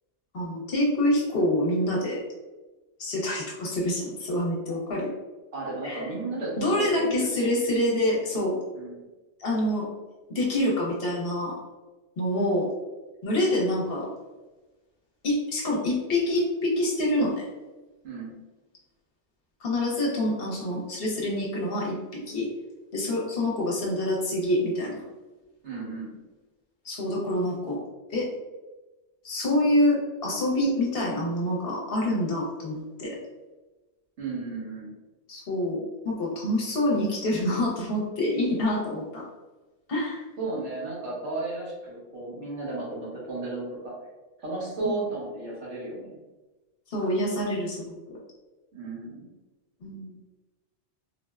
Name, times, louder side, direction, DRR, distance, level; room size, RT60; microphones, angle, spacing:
voice 1, 0.3-2.2 3.0-5.1 5.8-6.1 6.6-8.6 9.4-9.9 10.3-11.6 12.2-12.7 13.2-14.1 15.2-17.5 19.6-22.5 22.9-25.0 26.8-27.8 28.1-28.3 29.2-33.2 35.3-39.3 39.9-40.2 44.8-45.0 46.9-48.2 49.8-50.1, left 1 dB, 60° left, -3 dB, 0.9 m, -26 dB
voice 2, 5.5-7.5 8.7-9.0 18.0-18.3 25.6-26.1 34.2-34.9 40.4-43.9 44.4-46.2 48.7-49.3, right 3 dB, 85° right, -6 dB, 1.4 m, -34 dB
3.9 x 2.1 x 2.3 m, 1.2 s
omnidirectional pair, 1.2 m